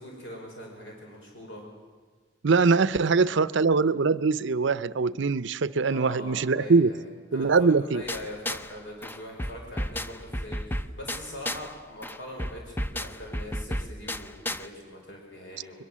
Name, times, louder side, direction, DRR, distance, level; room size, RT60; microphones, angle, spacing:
voice 1, 0.0-1.6 3.0-3.5 5.9-15.8, left 1 dB, 65° left, 0 dB, 5.0 m, -42 dB
voice 2, 2.4-6.9 7.3-8.0, right 4 dB, 65° right, 16 dB, 0.6 m, -22 dB
sound 1, 8.1-8.7 9.0-11.7 12.0-14.7, left 1 dB, 10° left, 0.6 m, -33 dB
22.5 x 22.0 x 7.5 m, 1.5 s
head